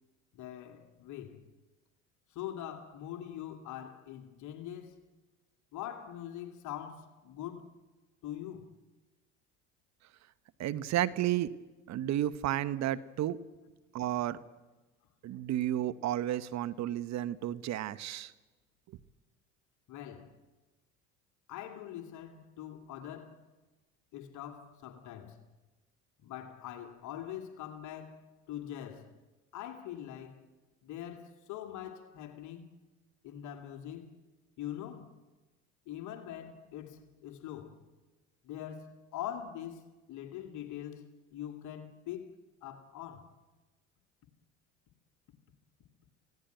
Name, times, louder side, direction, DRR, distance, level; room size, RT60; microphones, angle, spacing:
voice 1, 0.3-1.5 2.3-5.0 5.7-7.7 8.2-8.7 19.9-20.4 21.5-23.5 24.1-25.4 26.2-29.2 29.5-30.5 30.8-32.7 33.2-34.1 34.6-35.1 35.9-37.8 38.4-42.4 42.6-43.3, left 11 dB, 60° left, 2.3 m, -43 dB
voice 2, 10.6-11.5 11.9-13.4 13.9-14.4 15.2-18.3, right 12 dB, 55° right, 1.1 m, -32 dB
24.5 x 16.5 x 9.1 m
supercardioid pair, 85°, 33 cm